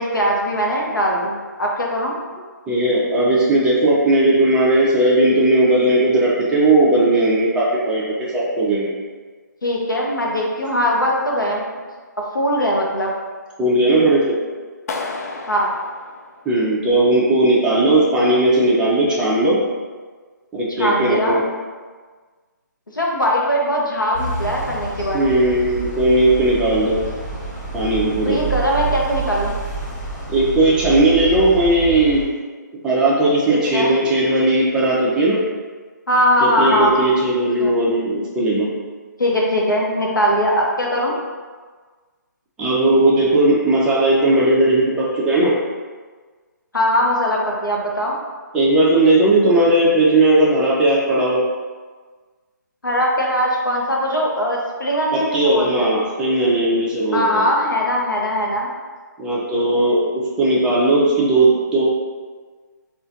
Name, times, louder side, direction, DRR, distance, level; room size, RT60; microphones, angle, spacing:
voice 1, 0.0-2.1 9.6-11.6 12.3-13.1 15.5-15.7 20.8-21.4 22.9-25.2 28.2-29.5 33.5-33.9 36.1-37.1 37.6-37.7 39.2-41.1 46.7-48.1 52.8-55.9 57.1-58.7, equal, 90° left, -2 dB, 0.9 m, -20 dB
voice 2, 2.7-9.0 13.6-14.4 16.5-19.6 20.5-21.4 25.1-27.0 27.7-28.4 30.3-32.2 32.8-35.4 36.4-38.7 42.6-45.5 48.5-51.4 55.1-57.5 59.2-61.8, right 1 dB, 10° right, -7 dB, 0.6 m, -17 dB
Clapping, 14.9-16.9, left 3 dB, 50° left, 0.4 m, -32 dB
sound 1, 24.1-32.2, right 3 dB, 30° left, 1.5 m, -28 dB
4.3 x 2.5 x 2.6 m, 1.5 s
figure-of-eight pair, 145°, 10 cm